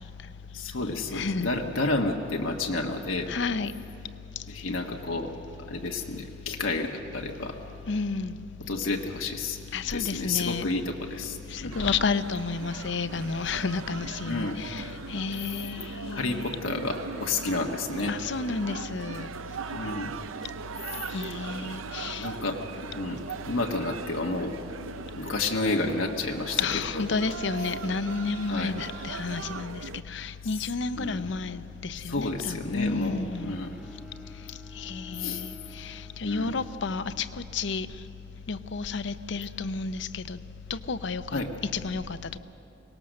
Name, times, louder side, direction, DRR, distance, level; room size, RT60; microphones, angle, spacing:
voice 1, 0.5-3.3 4.5-5.3 5.7-7.6 8.7-9.6 9.9-11.7 14.2-14.6 16.1-18.1 19.7-20.1 20.9-21.0 21.6-21.7 22.2-22.6 22.9-23.2 23.5-24.6 25.1-26.6 26.9-27.2 28.5-28.8 31.0-31.2 32.0-33.8 35.2-35.4 36.2-36.5 41.3-41.5, left 3 dB, 90° left, 1 dB, 1.2 m, -30 dB
voice 2, 1.1-1.5 3.3-3.7 7.9-8.4 9.7-10.6 11.5-16.6 18.1-19.3 21.1-22.3 26.6-29.8 30.1-33.6 34.8-37.3 37.5-37.9 38.5-40.4 40.7-41.4 41.7-42.2, left 4 dB, 65° left, 13 dB, 0.6 m, -31 dB
sound 1, 11.7-30.0, right 5 dB, 90° right, 0.5 m, -40 dB
Bowed string instrument, 33.3-37.5, left 1 dB, 5° right, 1.3 m, -51 dB
24.0 x 19.0 x 6.4 m, 2.9 s
head